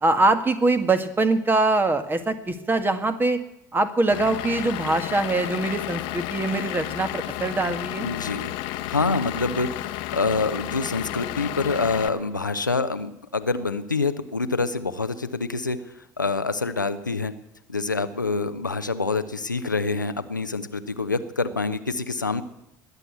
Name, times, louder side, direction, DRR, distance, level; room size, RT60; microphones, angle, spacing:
voice 1, 0.0-3.4 3.7-8.1, right 2 dB, 20° right, 10 dB, 1.7 m, -23 dB
Vehicle / Engine, 4.1-12.1, left 14 dB, 55° left, 1.0 m, -32 dB
voice 2, 8.0-8.5 8.8-17.3 17.7-22.4, left 3 dB, 90° left, 11 dB, 0.7 m, -26 dB
20.0 x 8.1 x 8.3 m, 0.86 s
figure-of-eight pair, 65°, 10 cm